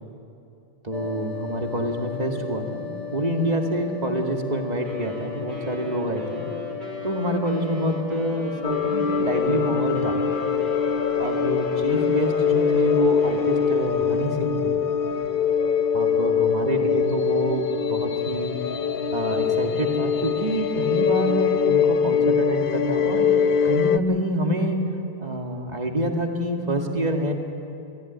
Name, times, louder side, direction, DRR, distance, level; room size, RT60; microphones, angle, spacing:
voice 1, 0.8-2.8 3.1-6.4 7.0-10.2 11.2-14.7 15.9-18.6 19.1-23.3 23.6-24.8 25.2-27.3, right 1 dB, 40° right, 2 dB, 2.2 m, -27 dB
sound 1, 0.9-10.6, left 6 dB, 35° left, 1.5 m, -36 dB
Wind instrument woodwind instrument, 4.8-14.4, left 1 dB, 75° right, 3.2 m, -40 dB
sound 2, 8.6-24.0, left 7 dB, 60° left, 0.8 m, -23 dB
23.5 x 15.5 x 9.4 m, 2.7 s
omnidirectional pair, 1.1 m